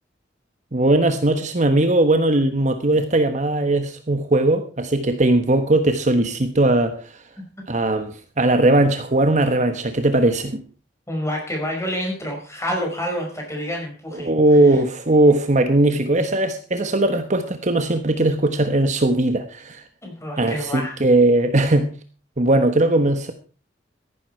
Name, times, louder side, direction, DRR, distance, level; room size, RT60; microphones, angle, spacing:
voice 1, 0.7-7.0 7.7-10.6 14.1-19.8 20.4-21.9 22.4-23.3, right 2 dB, 40° right, 1.2 m, -19 dB
voice 2, 11.1-14.3 20.0-21.0, equal, 15° left, 5.2 m, -28 dB
14.5 x 11.5 x 4.5 m
head